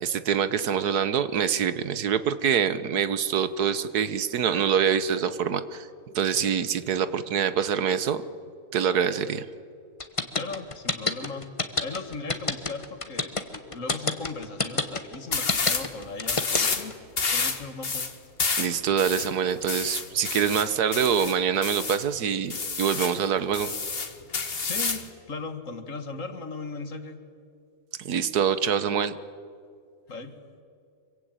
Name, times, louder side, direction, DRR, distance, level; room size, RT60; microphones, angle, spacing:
voice 1, 0.0-5.9 6.2-8.2 8.7-9.5 18.6-23.7 28.0-29.2, right 7 dB, 80° right, 13 dB, 1.6 m, -25 dB
sound 1, 10.0-16.9, left 3 dB, 20° left, 1.2 m, -27 dB
voice 2, 10.4-11.5 11.8-16.9 17.3-18.1 24.6-27.3 30.1-30.4, left 3 dB, 55° left, 7 dB, 2.2 m, -37 dB
sound 2, 15.3-15.9 16.2-16.9 17.2-22.0 22.5-23.2 23.5-25.1, left 4 dB, 40° left, 1.7 m, -29 dB
25.5 x 23.5 x 9.0 m, 2.3 s
omnidirectional pair, 1.6 m